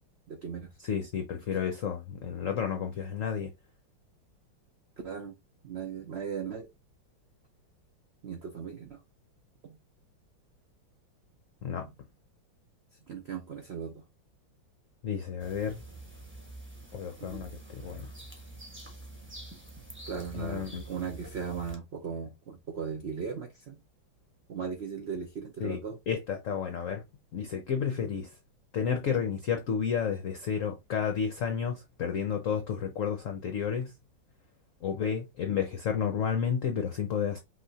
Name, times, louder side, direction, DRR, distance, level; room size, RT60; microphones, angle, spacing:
voice 1, 0.3-0.7 5.0-5.3 5.6-6.7 8.2-9.0 9.6-9.8 11.8-11.9 13.1-14.0 17.2-17.5 20.1-23.8 24.5-26.0, right 6 dB, 80° right, 0.5 m, -37 dB
voice 2, 0.8-3.5 11.6-11.9 15.0-15.8 16.9-18.1 20.3-20.8 25.6-25.8 26.1-27.0 27.3-28.3 28.7-33.9 34.8-37.4, left 7 dB, 60° left, 0.8 m, -31 dB
sound 1, 15.4-21.8, right 2 dB, 10° right, 0.8 m, -46 dB
5.8 x 2.9 x 2.8 m
omnidirectional pair, 2.1 m